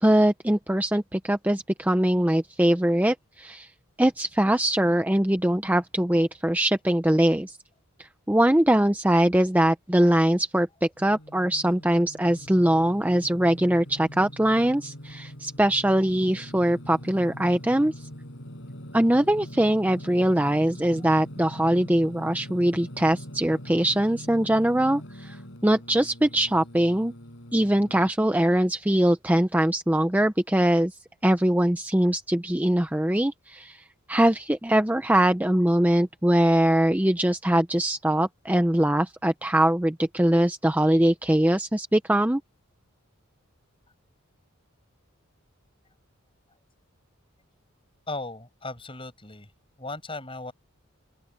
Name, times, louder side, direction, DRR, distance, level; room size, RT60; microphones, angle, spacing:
voice 1, 0.0-3.7 4.0-7.6 8.0-18.1 18.9-27.1 27.5-42.4, right 1 dB, 5° right, 0.5 m, -22 dB
Singing, 11.0-28.1, equal, 55° left, 5.8 m, -43 dB
voice 2, 48.1-49.5 49.8-50.5, left 2 dB, 25° left, 6.0 m, -36 dB
open air
head